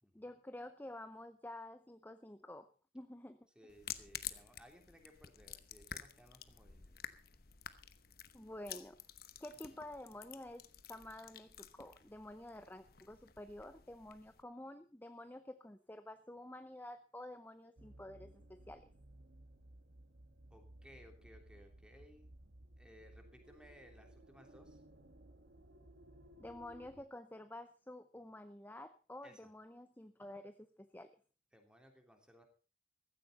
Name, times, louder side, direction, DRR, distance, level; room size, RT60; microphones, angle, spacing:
voice 1, 0.1-3.4 8.3-9.0 9.4-18.9 26.4-31.1, left 1 dB, 10° left, 10 dB, 0.7 m, -50 dB
voice 2, 3.5-7.0 9.7-9.9 20.5-22.3 22.8-24.8 29.2-29.5 31.5-32.4, equal, 5° right, 4 dB, 3.2 m, -61 dB
sound 1, 3.7-14.4, left 10 dB, 55° left, 1.0 m, -51 dB
sound 2, 17.8-27.0, right 1 dB, 90° right, 1.8 m, -59 dB
15.5 x 14.5 x 4.1 m, 0.36 s
head